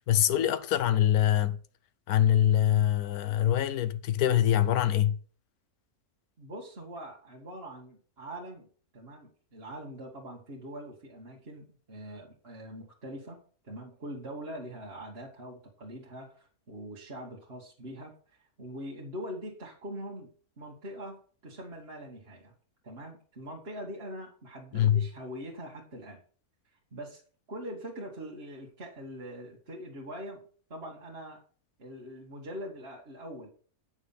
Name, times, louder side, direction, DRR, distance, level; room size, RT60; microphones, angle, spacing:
voice 1, 0.1-1.6 2.1-5.2 24.7-25.0, left 11 dB, 85° left, 1.3 m, -24 dB
voice 2, 6.4-8.7 8.9-13.4 13.6-18.1 18.6-20.3 20.6-22.5 22.8-26.2 26.9-27.2 27.5-30.4 30.7-31.4 31.8-33.5, equal, 45° right, 2.0 m, -43 dB
8.8 x 6.4 x 5.6 m
omnidirectional pair, 1.5 m